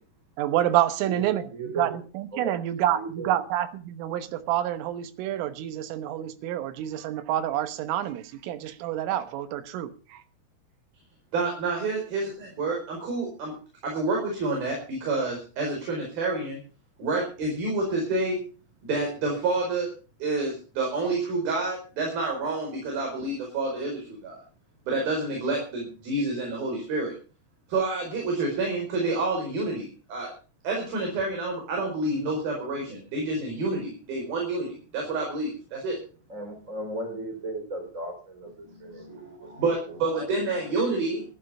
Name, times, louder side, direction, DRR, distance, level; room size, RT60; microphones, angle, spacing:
voice 1, 0.4-1.5 1.8-10.2, right 12 dB, 85° right, 3.7 m, -28 dB
voice 2, 1.0-2.0 2.3-2.6 2.9-3.4 36.3-39.5 39.9-40.3, right 2 dB, 20° right, 3.1 m, -36 dB
voice 3, 11.3-12.3 12.6-13.5 13.8-16.6 17.0-18.4 18.8-19.9 20.2-24.4 24.9-27.1 27.7-30.3 30.6-36.0 38.8-41.2, right 3 dB, 50° right, 6.4 m, -28 dB
14.5 x 12.5 x 5.4 m
omnidirectional pair, 5.7 m